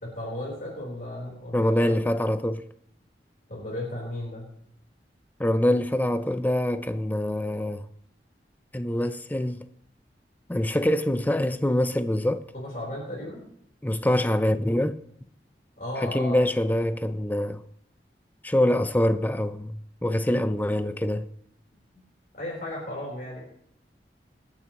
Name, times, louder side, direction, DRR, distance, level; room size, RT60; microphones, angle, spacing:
voice 1, 0.0-1.9 3.5-4.5 12.5-13.5 15.8-16.5 22.3-23.4, left 1 dB, 50° left, 3.8 m, -35 dB
voice 2, 1.5-2.6 5.4-7.8 8.7-9.6 10.5-12.5 13.8-15.0 16.0-17.6 18.4-21.3, left 1 dB, 10° left, 0.5 m, -25 dB
25.5 x 8.7 x 3.0 m
head